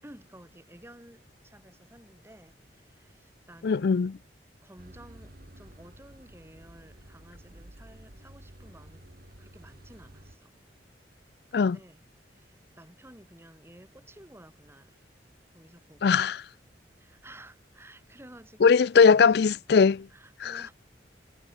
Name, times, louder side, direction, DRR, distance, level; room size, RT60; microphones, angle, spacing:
voice 1, 0.0-4.0 4.6-9.0 9.4-10.7 11.5-15.0 15.5-16.3 17.0-18.9 20.1-20.7, right 1 dB, 15° right, 6.8 m, -53 dB
voice 2, 3.6-4.1 11.5-11.8 16.0-16.4 18.6-20.1 20.4-20.6, left 5 dB, 60° left, 0.4 m, -20 dB
sound 1, 4.8-10.4, right 1 dB, 55° right, 3.0 m, -51 dB
head